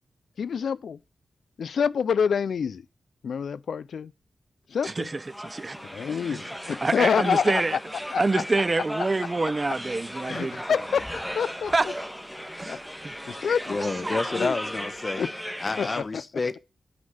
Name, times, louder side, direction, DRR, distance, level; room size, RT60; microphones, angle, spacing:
voice 1, 0.4-1.0 1.6-2.9 3.2-4.1 4.7-5.1 5.9-7.6 8.1-8.4 10.2-11.1 11.4-11.7 12.7-12.8 13.3-13.8 14.3-14.6 15.2-15.3 15.8-16.2, left 7 dB, 85° left, 0.4 m, -27 dB
voice 2, 4.8-5.8 6.3-7.8 8.2-10.6 11.7-11.9 12.6-13.1 13.8-14.2, right 3 dB, 35° right, 0.7 m, -27 dB
sound 1, 5.0-16.0, equal, 5° left, 1.7 m, -37 dB
sound 2, 9.1-15.0, right 1 dB, 10° right, 1.6 m, -47 dB
voice 3, 13.7-15.2 15.6-16.6, left 3 dB, 45° left, 1.0 m, -29 dB
9.7 x 5.4 x 6.3 m
cardioid pair, 70°, 0 cm